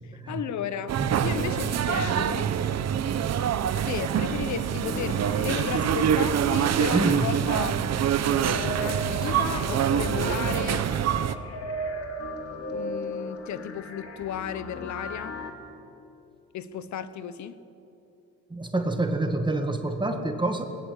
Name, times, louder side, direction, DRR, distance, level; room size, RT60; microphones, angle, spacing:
voice 1, 0.0-1.0 1.2-2.5 3.8-7.8 8.2-10.9 12.7-15.4 16.5-17.6, left 9 dB, 70° left, 14 dB, 1.2 m, -34 dB
sound 1, 0.9-11.3, right 9 dB, 60° right, 1.0 m, -25 dB
voice 2, 1.0-1.4 6.9-7.3 18.5-20.7, right 2 dB, 15° right, 5 dB, 1.9 m, -27 dB
sound 2, 4.8-15.5, left 1 dB, 50° left, 2.8 m, -37 dB
Meow, 5.1-7.6 8.2-10.2, left 1 dB, 20° left, 4.4 m, -50 dB
20.0 x 19.0 x 8.4 m, 2.9 s
cardioid pair, 90°, 30 cm